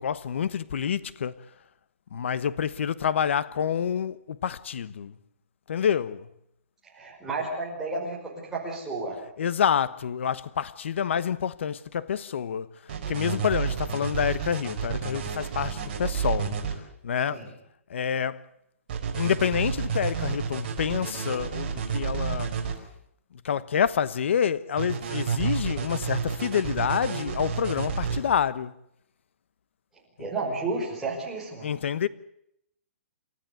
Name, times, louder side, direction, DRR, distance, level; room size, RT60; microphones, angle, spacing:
voice 1, 0.0-1.3 2.1-5.1 5.7-6.3 9.4-12.7 13.1-16.5 17.0-17.5 17.9-18.4 19.1-22.5 23.4-28.7 30.2-30.3 31.6-32.1, left 8 dB, 60° left, 1.2 m, -27 dB
voice 2, 6.9-9.2 17.3-17.5 30.2-31.7, right 3 dB, 5° right, 5.3 m, -32 dB
sound 1, 12.9-16.7 18.9-22.7 24.8-28.2, right 6 dB, 40° right, 4.9 m, -30 dB
29.0 x 13.5 x 9.5 m
hypercardioid pair, 175°, 7 cm